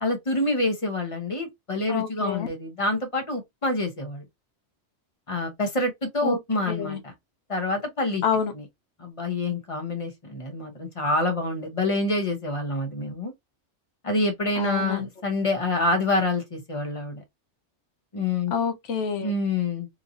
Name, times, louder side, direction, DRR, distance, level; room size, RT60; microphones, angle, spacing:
voice 1, 0.0-4.2 5.3-7.1 7.5-8.2 8.6-8.7 9.0-13.3 14.0-17.2 18.1-18.5 19.2-19.9, left 2 dB, 30° left, 0.8 m, -27 dB
voice 2, 1.9-2.5 6.2-6.4 6.7-7.0 8.2-8.5 14.6-15.1 18.5-19.3, left 6 dB, 85° left, 1.1 m, -27 dB
3.0 x 2.6 x 2.4 m
omnidirectional pair, 1.2 m